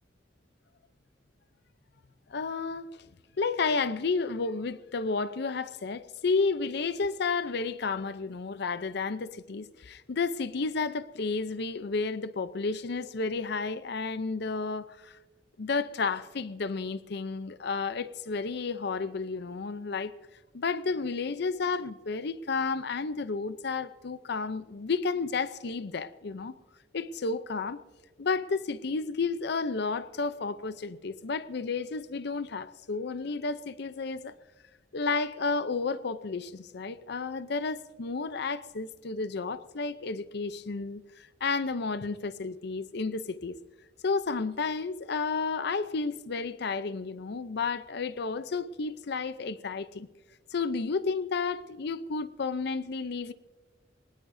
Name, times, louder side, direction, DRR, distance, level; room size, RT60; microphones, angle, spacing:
voice 1, 2.3-2.9 3.4-15.2 15.6-20.1 20.5-26.5 26.9-27.8 28.2-34.3 34.9-43.6 44.0-50.1 50.5-53.3, left 4 dB, 65° left, 0.6 m, -32 dB
22.0 x 19.5 x 2.7 m
head